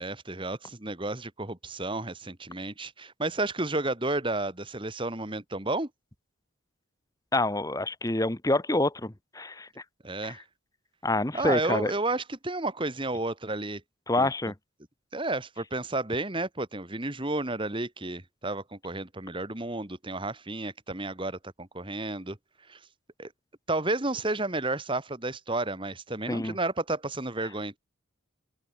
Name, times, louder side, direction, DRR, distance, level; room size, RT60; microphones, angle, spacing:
voice 1, 0.0-5.9 10.0-10.4 11.3-13.8 14.2-14.3 15.1-22.4 22.7-22.8 23.2-23.3 23.7-27.8, right 2 dB, 25° right, 1.8 m, -31 dB
voice 2, 7.3-9.7 10.2-10.4 11.0-11.9 14.1-14.5 26.3-26.6, left 2 dB, 15° left, 1.1 m, -27 dB
open air
head